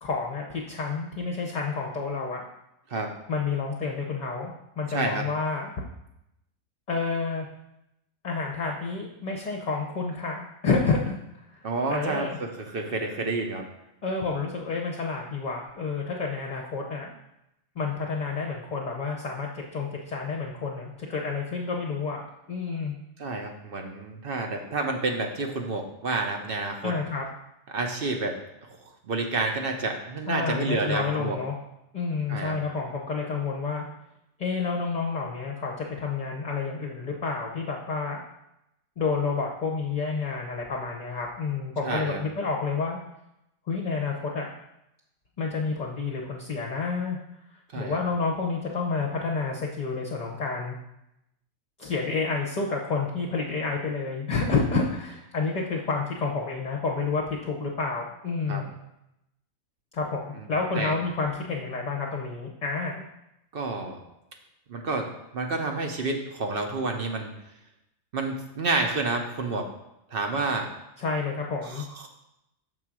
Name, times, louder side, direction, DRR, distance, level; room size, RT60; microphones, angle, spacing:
voice 1, 0.0-2.4 3.3-5.8 6.9-7.5 8.2-11.2 11.5-12.4 14.0-17.1 17.8-22.2 22.5-23.0 26.8-27.3 30.3-31.6 31.9-33.9 34.4-38.2 39.0-43.0 43.7-44.5 45.4-47.2 47.7-50.8 51.8-58.7 59.9-63.1 71.0-71.8, left 4 dB, 40° left, 0 dB, 0.7 m, -29 dB
voice 2, 4.9-5.2 11.6-13.7 23.2-26.9 27.7-28.4 28.8-31.4 32.3-32.6 41.8-42.2 47.7-48.0 58.5-58.6 60.3-60.5 60.7-61.0 63.5-64.0 64.7-65.1 65.3-67.3 68.1-69.7 70.1-70.7 71.7-72.1, right 3 dB, 50° right, 3 dB, 0.8 m, -29 dB
6.3 x 3.8 x 6.0 m, 0.86 s
omnidirectional pair, 1.4 m